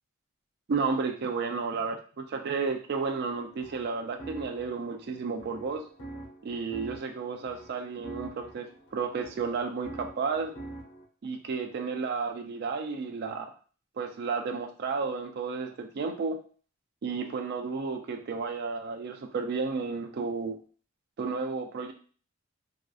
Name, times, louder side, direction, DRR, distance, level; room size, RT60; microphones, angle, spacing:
voice 1, 0.7-5.8 6.4-10.5 11.2-13.5 14.0-16.4 17.0-20.6 21.2-21.9, right 4 dB, 50° right, 4 dB, 0.4 m, -32 dB
sound 1, 3.4-11.0, right 2 dB, 80° left, 1.2 m, -45 dB
3.7 x 2.3 x 2.3 m, 0.42 s
head